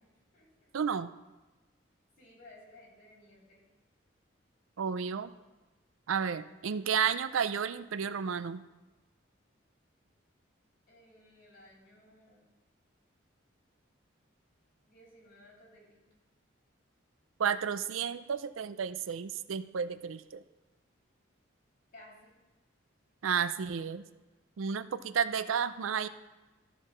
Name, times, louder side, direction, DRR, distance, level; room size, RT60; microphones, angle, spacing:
voice 1, 0.0-0.7 2.2-3.6 4.9-5.0 10.9-12.5 14.9-16.0 21.9-22.3, left 1 dB, 45° left, -4 dB, 3.4 m, -57 dB
voice 2, 0.7-1.1 4.8-5.3 6.1-8.6 17.4-20.4 23.2-24.0 24.6-26.1, right 7 dB, 85° right, 14 dB, 0.4 m, -32 dB
13.0 x 4.5 x 6.2 m, 1.1 s
head